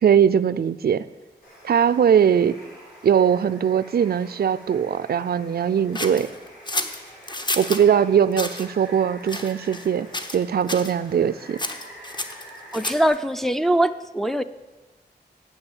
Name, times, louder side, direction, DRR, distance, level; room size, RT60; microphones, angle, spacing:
voice 1, 0.0-1.0 1.6-2.6 3.0-6.3 7.6-11.6, right 8 dB, 60° right, 16 dB, 0.4 m, -20 dB
Water, 1.4-13.1, equal, 55° left, 5.2 m, -46 dB
sound 1, 5.9-7.8 8.3-8.7 9.3-9.9 10.1-10.4 10.7-10.9 11.6-13.2, left 2 dB, 25° left, 0.9 m, -30 dB
voice 2, 12.7-14.4, right 1 dB, ahead, 8 dB, 0.4 m, -22 dB
9.8 x 8.1 x 8.2 m, 1.2 s
wide cardioid pair, 130°, 18 cm